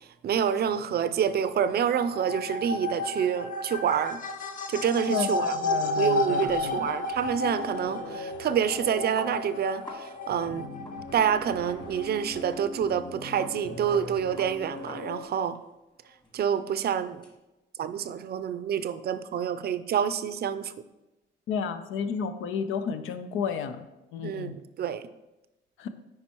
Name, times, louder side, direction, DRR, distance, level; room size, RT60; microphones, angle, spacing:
voice 1, 0.2-4.2 4.7-10.7 11.1-15.6 16.3-17.2 17.8-20.7 24.2-25.0, right 8 dB, 55° right, 13 dB, 0.5 m, -27 dB
sound 1, 1.3-12.5, left 2 dB, 40° left, 0.7 m, -33 dB
voice 2, 5.1-6.9 21.5-23.8 24.1-24.6 25.8-25.9, left 6 dB, 90° left, 9 dB, 0.6 m, -32 dB
sound 2, 5.8-15.2, left 3 dB, 70° left, 1.0 m, -41 dB
sound 3, 6.4-10.1 10.3-10.4 10.7-12.1 12.5-12.7 12.9-15.6 15.9-17.4, left 2 dB, 25° left, 1.6 m, -48 dB
9.5 x 4.6 x 3.0 m, 1.0 s
cardioid pair, 90°, 20 cm